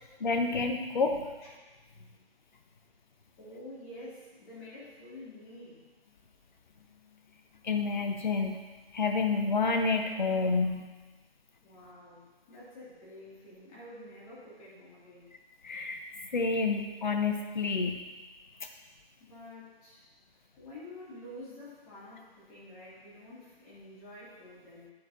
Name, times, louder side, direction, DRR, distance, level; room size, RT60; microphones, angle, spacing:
voice 1, 0.2-1.2 7.6-8.6 8.9-10.9 15.6-16.0 16.3-18.0, left 4 dB, 50° left, 4 dB, 1.0 m, -29 dB
voice 2, 3.4-5.9 11.6-15.3 19.2-20.0 20.3-24.9, left 1 dB, 15° left, -8 dB, 2.5 m, -49 dB
15.0 x 6.6 x 2.7 m, 1.2 s
figure-of-eight pair, 145°, 31 cm